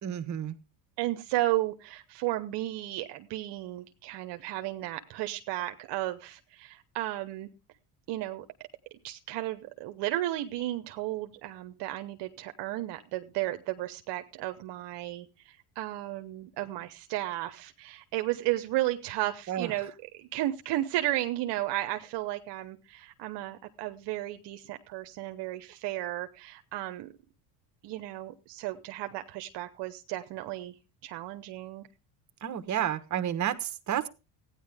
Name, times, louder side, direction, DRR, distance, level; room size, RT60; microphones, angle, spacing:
voice 1, 0.0-0.5 19.5-19.7 32.4-34.1, right 10 dB, 40° right, 10 dB, 1.3 m, -31 dB
voice 2, 1.0-7.5 8.1-8.5 9.0-27.1 27.8-30.8 31.0-31.9, right 15 dB, 65° right, 7 dB, 1.0 m, -34 dB
15.0 x 9.7 x 3.5 m, 0.29 s
supercardioid pair, 100°, 45 cm